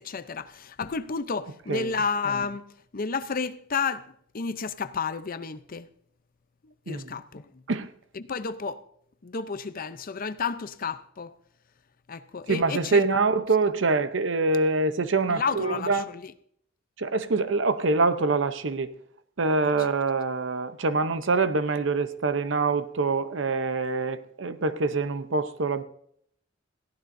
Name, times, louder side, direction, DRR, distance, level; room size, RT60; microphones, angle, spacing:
voice 1, 0.0-2.6 2.9-5.9 6.6-7.6 8.1-8.8 9.2-11.3 12.1-13.1 15.3-16.3, left 5 dB, 50° left, 0.6 m, -31 dB
voice 2, 12.5-16.0 17.0-18.9 19.4-25.8, right 3 dB, 70° right, 0.8 m, -25 dB
21.0 x 15.0 x 2.7 m
head